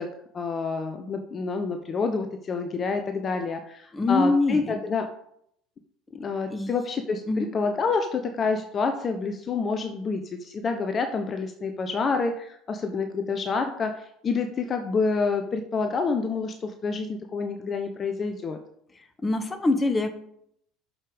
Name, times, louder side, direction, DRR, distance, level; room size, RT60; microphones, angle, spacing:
voice 1, 0.0-5.1 6.1-18.6, left 4 dB, 35° left, 6 dB, 1.0 m, -28 dB
voice 2, 3.9-4.8 6.5-6.7 7.3-7.5 19.2-20.1, left 2 dB, 20° left, 10 dB, 1.4 m, -24 dB
8.7 x 6.7 x 5.2 m, 0.72 s
figure-of-eight pair, 65°, 0 cm